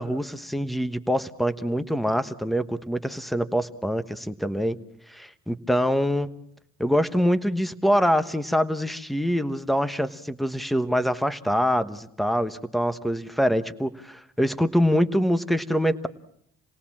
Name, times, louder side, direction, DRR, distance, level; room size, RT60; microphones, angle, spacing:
voice 1, 0.0-4.8 5.1-6.3 6.8-16.1, equal, ahead, 12 dB, 1.2 m, -24 dB
28.5 x 18.0 x 7.4 m, 0.72 s
cardioid pair, 90°, 30 cm